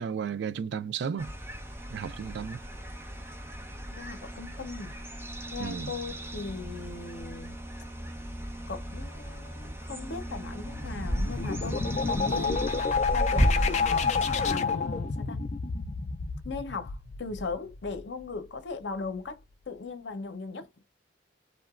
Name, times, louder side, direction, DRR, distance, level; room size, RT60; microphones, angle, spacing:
voice 1, 0.0-1.3 1.9-2.6 5.6-5.9, right 6 dB, 65° right, 0.3 m, -33 dB
sound 1, 1.2-14.6, equal, 15° right, 0.6 m, -34 dB
voice 2, 3.9-5.0 5.5-7.6 8.7-12.7 13.1-14.1 14.5-15.4 16.4-20.7, left 4 dB, 70° left, 0.7 m, -38 dB
sound 2, 10.6-18.2, left 5 dB, 40° left, 0.3 m, -30 dB
2.8 x 2.2 x 2.4 m
head